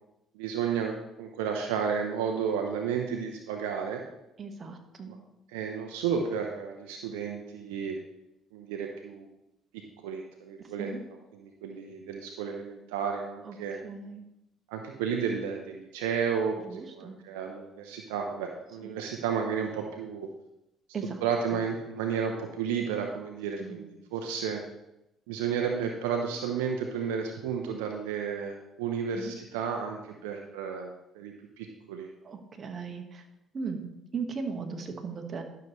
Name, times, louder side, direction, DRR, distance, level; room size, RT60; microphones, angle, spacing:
voice 1, 0.3-4.0 5.1-5.2 5.5-8.0 8.5-9.3 10.0-10.9 11.3-13.8 14.7-20.3 21.2-24.6 25.3-32.1, right 6 dB, 85° right, 2 dB, 0.7 m, -32 dB
voice 2, 4.4-5.1 10.8-11.0 13.4-13.6 13.8-14.2 16.6-17.2 18.8-18.9 20.9-21.2 23.6-23.9 29.1-29.3 32.2-33.3 33.5-35.4, right 5 dB, 45° right, 4 dB, 1.5 m, -37 dB
11.5 x 6.7 x 3.2 m, 0.87 s
hypercardioid pair, 60°, 0 cm